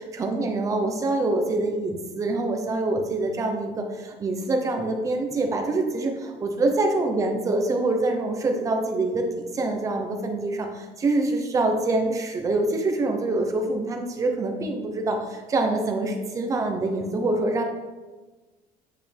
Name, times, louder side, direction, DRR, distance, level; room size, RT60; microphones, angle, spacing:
voice 1, 0.1-17.6, right 2 dB, 20° right, 3 dB, 0.8 m, -25 dB
8.6 x 5.5 x 3.4 m, 1.3 s
cardioid pair, 175°, 15 cm